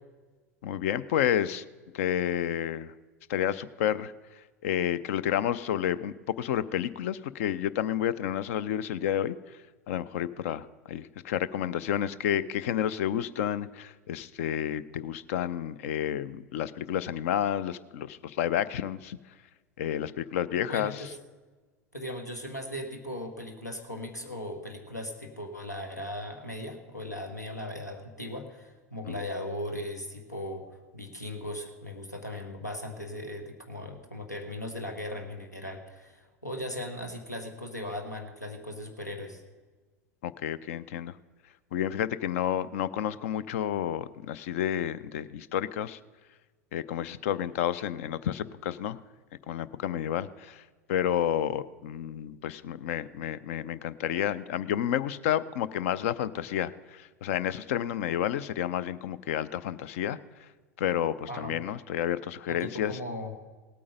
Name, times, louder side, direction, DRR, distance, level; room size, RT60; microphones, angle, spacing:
voice 1, 0.6-1.6 1.9-2.9 3.3-9.6 9.9-19.2 19.8-21.0 29.1-29.2 40.2-41.2 41.7-46.0 46.7-49.0 49.5-60.5 60.8-63.0, left 10 dB, 55° left, 17 dB, 0.5 m, -30 dB
voice 2, 20.6-21.1 21.9-30.6 30.9-39.4 61.3-61.5 62.5-63.4, left 1 dB, 90° left, 4 dB, 1.5 m, -38 dB
17.5 x 8.6 x 5.2 m, 1.3 s
figure-of-eight pair, 85°, 9 cm